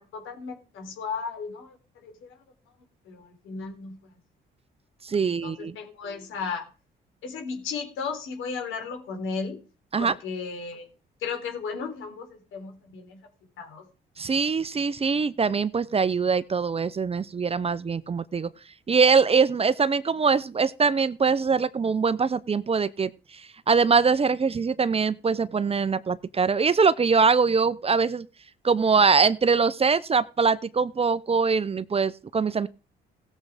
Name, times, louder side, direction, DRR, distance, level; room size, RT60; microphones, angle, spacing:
voice 1, 0.1-1.8 2.0-2.4 3.1-4.0 5.4-6.6 7.2-9.6 10.0-10.9 11.2-13.2 13.6-13.8, left 5 dB, 80° left, 4 dB, 4.1 m, -35 dB
voice 2, 5.0-5.8 9.9-10.1 14.2-18.5 18.9-23.4 23.7-28.3 28.6-32.7, right 5 dB, 30° right, 17 dB, 0.7 m, -23 dB
16.5 x 7.5 x 5.0 m, 0.35 s
cardioid pair, 90°, 20 cm